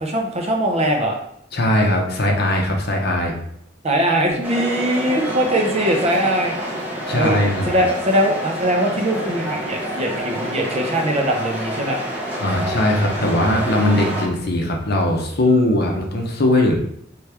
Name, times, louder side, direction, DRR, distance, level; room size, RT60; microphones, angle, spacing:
voice 1, 0.0-1.2 3.8-6.7 7.1-7.4 7.7-12.0 15.5-15.6, right 1 dB, 35° right, 1 dB, 0.7 m, -21 dB
voice 2, 1.5-3.4 7.1-7.7 12.4-16.7, left 1 dB, 55° left, 1 dB, 0.9 m, -19 dB
sound 1, 4.4-14.3, equal, 10° right, 1.0 m, -28 dB
4.4 x 3.4 x 3.4 m, 0.71 s
head